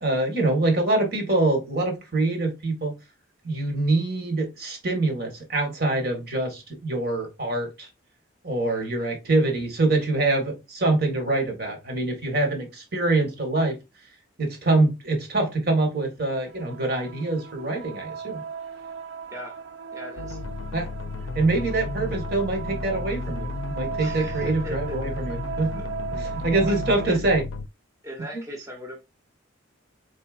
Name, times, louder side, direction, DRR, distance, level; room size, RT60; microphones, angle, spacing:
voice 1, 0.0-2.9 3.4-7.9 8.4-13.8 14.4-18.4 20.7-20.9 21.4-25.8 26.1-27.4 28.3-28.4, right 2 dB, 50° right, 1.7 m, -25 dB
voice 2, 8.7-9.1 19.3-19.6 19.9-20.4 24.0-25.1 26.6-27.3 28.0-29.0, equal, 15° right, 1.0 m, -38 dB
sound 1, 16.3-27.2, right 6 dB, 70° right, 0.4 m, -37 dB
sound 2, 20.2-27.7, left 3 dB, 85° left, 0.4 m, -33 dB
4.4 x 4.2 x 2.5 m
head